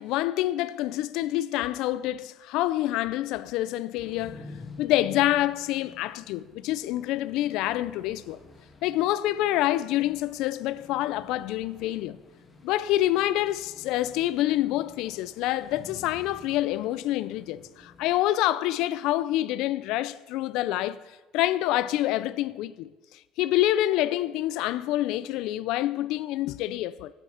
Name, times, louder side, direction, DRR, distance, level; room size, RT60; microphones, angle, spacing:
voice 1, 0.0-4.5 4.8-8.4 8.8-12.2 12.6-21.0 21.3-22.9 23.4-27.1, left 14 dB, 75° left, 0.4 m, -27 dB
sound 1, 4.0-18.1, left 3 dB, 20° left, 1.7 m, -50 dB
10.0 x 9.9 x 5.7 m
cardioid pair, 120°, 0 cm